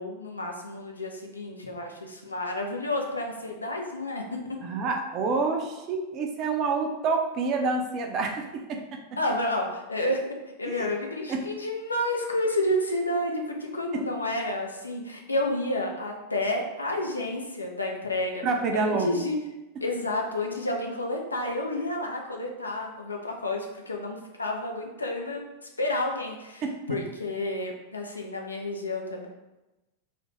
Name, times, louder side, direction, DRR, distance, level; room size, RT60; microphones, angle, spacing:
voice 1, 0.0-4.7 9.2-18.4 18.7-19.4 19.8-25.4 25.8-26.6 26.9-29.3, left 1 dB, 80° left, 1 dB, 0.4 m, -30 dB
voice 2, 4.6-8.8 10.7-10.9 11.3-11.5 13.9-14.0 18.4-19.1 26.6-27.0, right 4 dB, 35° right, 3 dB, 0.4 m, -28 dB
2.4 x 2.1 x 3.1 m, 1.0 s
figure-of-eight pair, 90°, 0 cm